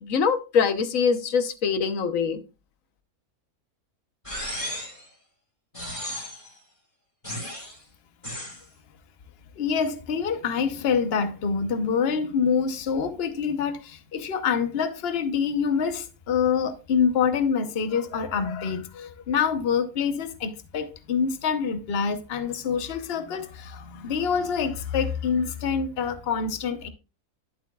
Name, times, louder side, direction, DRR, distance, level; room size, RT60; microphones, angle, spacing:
voice 1, 0.0-2.4, left 6 dB, 60° left, 1.3 m, -23 dB
sound 1, 4.3-5.1 5.7-6.5 7.2-7.8 8.2-8.6, equal, 20° left, 3.2 m, -34 dB
voice 2, 9.6-26.9, left 6 dB, 45° left, 1.1 m, -26 dB
11.5 x 7.5 x 2.3 m
omnidirectional pair, 1.6 m